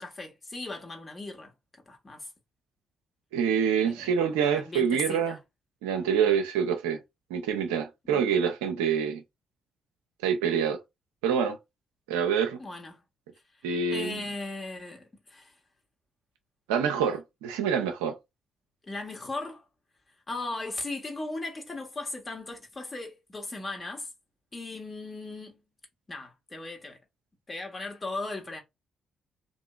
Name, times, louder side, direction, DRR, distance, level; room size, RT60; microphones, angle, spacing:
voice 1, 0.0-1.5 1.9-2.3 3.8-4.2 4.4-5.4 8.0-8.3 12.6-13.0 13.9-15.5 18.8-19.6 20.3-24.1 24.5-25.6 26.1-27.0 27.5-28.6, left 2 dB, 35° left, 1.2 m, -37 dB
voice 2, 3.3-5.4 5.8-7.0 7.3-9.2 10.2-10.8 11.2-11.6 12.1-12.6 13.6-14.2 16.7-18.1, right 7 dB, 85° right, 0.5 m, -26 dB
2.9 x 2.5 x 2.3 m
hypercardioid pair, 45°, 0 cm